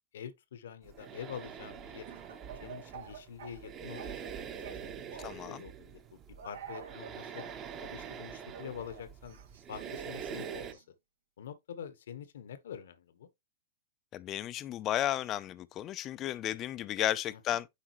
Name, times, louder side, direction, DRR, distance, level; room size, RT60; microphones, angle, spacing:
voice 1, 0.1-2.2 2.6-7.5 7.8-9.4 9.7-10.8 11.4-13.3 17.3-17.6, left 8 dB, 75° left, 1.3 m, -46 dB
sound 1, 0.8-10.7, right 7 dB, 30° right, 1.3 m, -45 dB
Speech / Cough, 2.1-4.3 4.6-5.5 6.4-7.6 8.5-10.8, right 7 dB, 80° right, 2.4 m, -48 dB
voice 2, 5.2-5.6 14.1-17.7, left 12 dB, 30° left, 0.6 m, -33 dB
10.0 x 3.7 x 3.1 m
hypercardioid pair, 135°, 0 cm